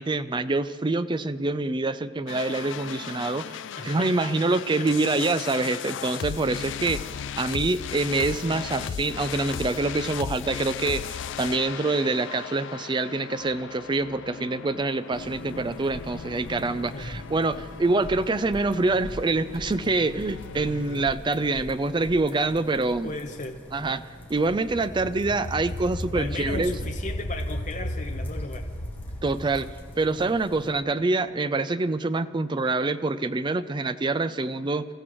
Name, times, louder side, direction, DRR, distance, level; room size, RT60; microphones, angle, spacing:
voice 1, 0.0-7.0 7.4-23.1 23.7-26.7 29.2-29.7 30.0-34.9, right 3 dB, 25° right, 12 dB, 0.4 m, -26 dB
sound 1, 2.3-21.1, left 8 dB, 65° left, 0.4 m, -37 dB
voice 2, 3.8-4.9 16.9-17.2 23.0-23.6 26.1-28.7, left 2 dB, 40° left, 3 dB, 0.8 m, -36 dB
sound 2, 15.1-30.7, equal, 10° left, 1.6 m, -45 dB
sound 3, 24.2-30.8, equal, 85° left, 3.5 m, -35 dB
27.0 x 14.5 x 3.1 m, 2.1 s
head